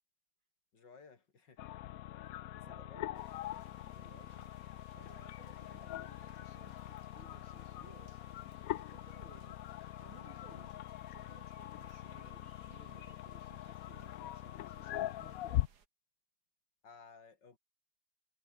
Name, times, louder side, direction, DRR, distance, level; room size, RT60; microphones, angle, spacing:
voice 1, 0.7-1.7 2.5-3.1 16.8-17.6, left 5 dB, 60° left, 3.4 m, -58 dB
sound 1, 1.6-15.7, left 14 dB, 90° left, 0.7 m, -42 dB
voice 2, 2.6-3.3 4.0-4.5 4.9-8.2 8.7-9.6 10.0-10.8 11.1-15.7, right 6 dB, 85° right, 3.1 m, -61 dB
sound 2, 3.1-15.9, right 6 dB, 55° right, 2.2 m, -66 dB
omnidirectional pair, 2.2 m